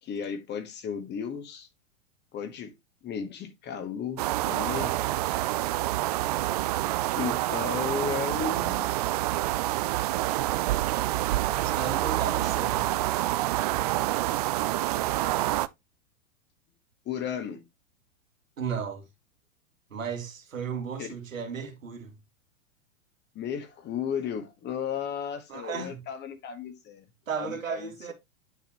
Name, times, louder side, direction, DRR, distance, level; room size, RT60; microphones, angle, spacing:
voice 1, 0.0-1.7 2.3-2.7 3.0-5.0 5.2-5.4 7.1-8.9 17.0-17.6 21.0-21.1 23.3-27.0 27.4-28.1, left 7 dB, 25° left, 1.5 m, -34 dB
sound 1, 4.2-15.7, right 16 dB, 30° right, 0.4 m, -27 dB
voice 2, 11.6-12.9 18.6-19.0 19.9-22.1 25.5-26.0 27.3-28.1, right 6 dB, 75° right, 2.4 m, -34 dB
9.3 x 5.8 x 3.0 m
figure-of-eight pair, 100°, 40 cm